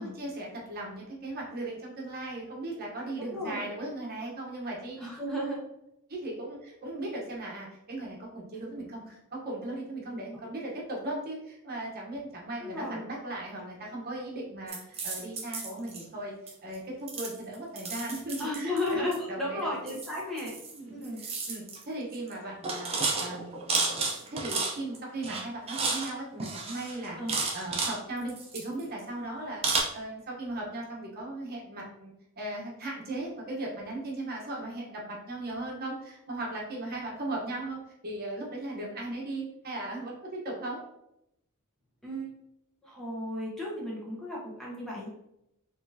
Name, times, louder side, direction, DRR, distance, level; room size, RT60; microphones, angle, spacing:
voice 1, 0.0-5.0 6.1-16.3 16.6-19.7 20.7-20.9 21.2-22.9 23.2-27.2 27.5-40.8, right 2 dB, 45° right, -2 dB, 1.0 m, -37 dB
voice 2, 3.3-3.6 5.0-5.6 10.1-10.2 12.6-13.0 18.4-20.5 20.9-21.2 27.2-27.3 42.0-42.3 42.8-45.1, left 1 dB, ahead, -6 dB, 0.9 m, -34 dB
sound 1, 14.7-16.0 16.5-16.7 17.1-19.2 19.9-20.8 21.0-21.8 22.1-22.3 22.6-25.0 25.2-26.1 26.4-28.0 28.3-29.0 29.6-29.8, right 4 dB, 25° right, 0.7 m, -32 dB
4.4 x 3.2 x 2.7 m, 0.82 s
head